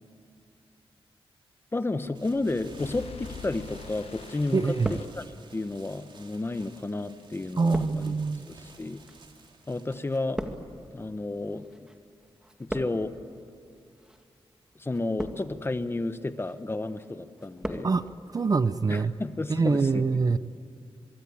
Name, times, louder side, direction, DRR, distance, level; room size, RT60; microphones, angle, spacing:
voice 1, 1.7-4.6 4.9-5.2 5.5-8.1 8.5-9.0 9.7-10.4 10.9-11.9 12.6-13.1 14.7-17.9 18.9-20.0, left 2 dB, 25° left, 10 dB, 1.2 m, -32 dB
sound 1, 2.1-5.9, left 7 dB, 80° left, 1.0 m, -45 dB
sound 2, 2.1-11.7, right 3 dB, 55° right, 3.6 m, -54 dB
sound 3, 3.7-4.3 4.6-5.6 6.3-12.0 12.2-13.2 13.9-14.2 14.9-15.7 16.1-16.6 17.0-17.9 18.2-18.3, equal, 5° right, 2.2 m, -39 dB
voice 2, 4.5-5.0 7.6-8.5 17.8-19.1 19.5-20.4, right 4 dB, 40° right, 13 dB, 0.7 m, -25 dB
24.0 x 24.0 x 8.7 m, 2.4 s
wide cardioid pair, 115°, 10 cm